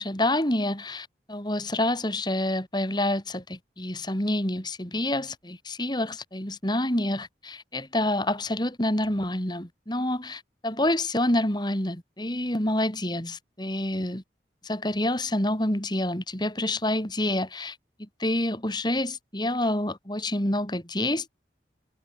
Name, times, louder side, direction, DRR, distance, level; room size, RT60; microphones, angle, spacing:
voice 1, 0.0-14.2 14.6-21.3, left 1 dB, 25° left, 4.5 m, -28 dB
head